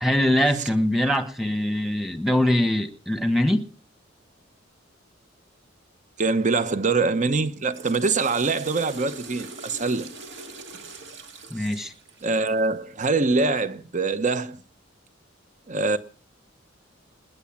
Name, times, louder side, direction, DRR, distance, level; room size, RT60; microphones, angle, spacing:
voice 1, 0.0-3.6 11.5-11.9, left 1 dB, ahead, 1.4 m, -22 dB
voice 2, 6.2-10.1 12.2-14.6 15.7-16.0, right 3 dB, 40° right, 1.0 m, -24 dB
Water / Toilet flush, 7.5-12.7, right 3 dB, 65° right, 2.3 m, -42 dB
20.5 x 8.4 x 7.3 m
head